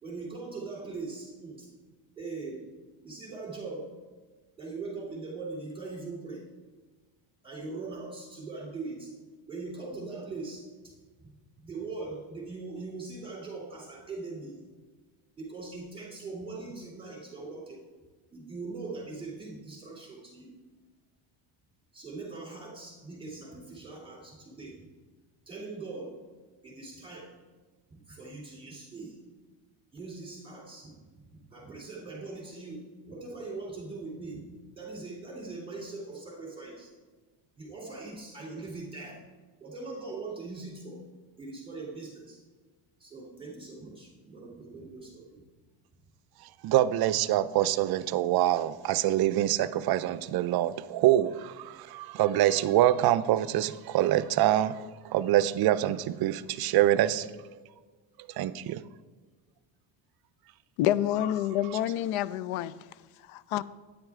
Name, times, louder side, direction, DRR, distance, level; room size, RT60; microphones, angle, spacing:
voice 1, 0.0-1.7 2.2-2.6 3.0-3.9 4.6-6.4 7.4-9.1 9.5-11.3 11.6-14.7 15.4-17.8 18.3-20.5 21.9-24.8 25.5-26.2 26.6-27.3 27.9-29.2 29.9-34.4 34.8-36.9 37.6-39.2 39.6-41.0 41.4-42.4 43.0-45.4, right 3 dB, 10° right, 2.9 m, -41 dB
voice 2, 46.6-57.4 58.3-58.8, right 13 dB, 50° right, 0.5 m, -25 dB
voice 3, 60.8-62.7 63.3-63.6, left 12 dB, 75° left, 0.6 m, -28 dB
9.6 x 8.8 x 3.6 m
cardioid pair, 105°, 49 cm